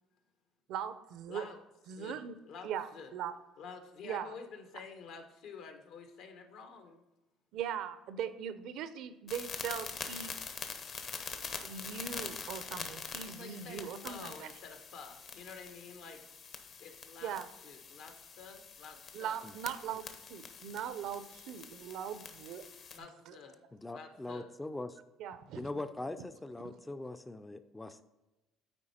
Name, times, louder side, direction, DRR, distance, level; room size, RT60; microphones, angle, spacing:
voice 1, 0.7-1.4 1.9-2.3 2.6-3.4 4.0-4.3 7.5-10.4 11.6-14.5 17.2-17.5 19.1-22.6 23.3-23.4 25.2-25.7 26.6-26.7, right 8 dB, 70° right, 12 dB, 0.6 m, -40 dB
voice 2, 1.3-1.6 2.0-2.2 2.4-3.1 3.6-7.0 13.2-16.2 16.8-17.4 17.6-19.4 22.9-23.6 23.9-24.5, left 5 dB, 70° left, 5 dB, 1.2 m, -49 dB
sound 1, 9.3-23.0, left 5 dB, 45° left, 0.9 m, -45 dB
voice 3, 23.7-25.0 25.6-28.0, left 2 dB, 10° left, 10 dB, 0.4 m, -41 dB
8.8 x 4.6 x 4.3 m, 1.0 s
cardioid pair, 115°, 0 cm